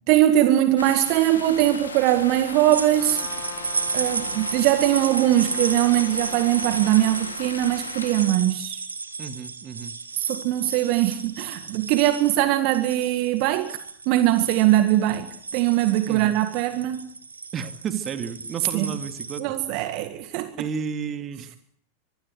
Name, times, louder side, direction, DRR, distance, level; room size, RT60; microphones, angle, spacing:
voice 1, 0.1-3.2 3.9-8.8 10.2-13.8 14.1-17.1 18.7-18.9 19.4-20.5, right 14 dB, 45° right, 1.9 m, -21 dB
sound 1, 0.8-8.2, left 4 dB, 75° left, 5.0 m, -37 dB
sound 2, 2.7-19.4, right 4 dB, 75° right, 2.4 m, -33 dB
Trumpet, 2.9-7.4, left 7 dB, 40° left, 5.6 m, -42 dB
voice 2, 9.2-9.9 16.1-16.3 17.5-19.5 20.6-21.6, right 6 dB, 30° right, 2.5 m, -32 dB
25.0 x 20.5 x 8.0 m
figure-of-eight pair, 90°, 0 cm